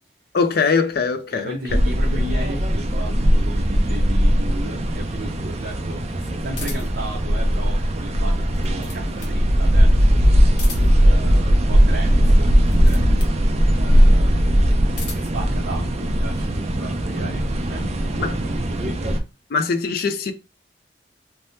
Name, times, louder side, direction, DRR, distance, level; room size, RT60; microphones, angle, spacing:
voice 1, 0.3-1.6 18.2-18.4 19.5-20.3, left 5 dB, 55° left, 0.4 m, -21 dB
voice 2, 1.3-10.2 11.0-13.0 13.8-14.6 15.1-19.1, right 1 dB, 60° right, 0.8 m, -34 dB
sound 1, 1.7-19.2, equal, 35° right, 0.4 m, -18 dB
sound 2, 6.6-7.1 8.4-9.4 10.5-11.1 12.6-13.4 14.6-15.4, left 4 dB, 70° left, 0.9 m, -37 dB
3.3 x 2.1 x 2.7 m
head